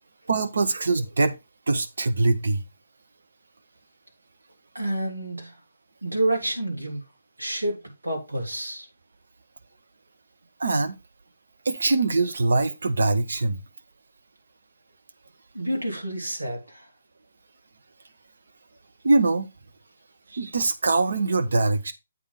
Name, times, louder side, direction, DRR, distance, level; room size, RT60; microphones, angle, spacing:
voice 1, 0.3-1.3 1.7-2.6 10.6-11.0 11.6-13.6 19.0-19.5 20.3-21.9, right 3 dB, 65° right, 1.0 m, -23 dB
voice 2, 4.7-5.6 6.0-7.0 7.4-8.9 15.5-16.9, right 1 dB, 80° right, 2.7 m, -29 dB
8.3 x 3.7 x 5.2 m
figure-of-eight pair, 135°, 0 cm